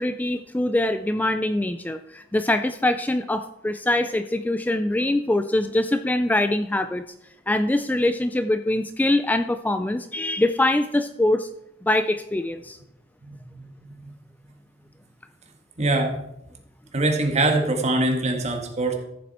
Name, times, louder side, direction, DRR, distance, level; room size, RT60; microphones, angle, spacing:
voice 1, 0.0-7.0 7.5-11.5 11.8-12.8, left 1 dB, 10° left, 9 dB, 0.3 m, -23 dB
voice 2, 13.2-14.1 15.8-16.2 16.9-18.9, right 2 dB, 35° right, 3 dB, 1.7 m, -24 dB
14.0 x 7.4 x 4.3 m, 0.83 s
head